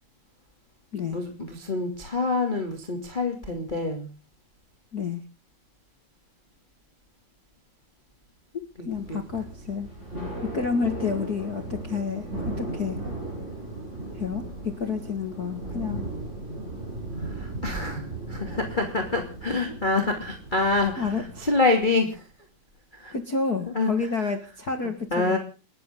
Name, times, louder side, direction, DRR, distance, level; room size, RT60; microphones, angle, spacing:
voice 1, 1.1-4.1 8.8-9.2 17.2-22.2 23.0-23.1 23.7-23.9 25.1-25.4, left 3 dB, 15° left, 3 dB, 2.1 m, -26 dB
voice 2, 4.9-5.2 8.5-9.9 10.4-13.0 14.2-16.0 21.0-21.5 23.1-25.4, left 5 dB, 65° left, 6 dB, 0.9 m, -30 dB
Thunder / Rain, 8.9-21.8, right 2 dB, 15° right, 7.7 m, -37 dB
30.0 x 10.5 x 3.8 m, 0.36 s
omnidirectional pair, 4.5 m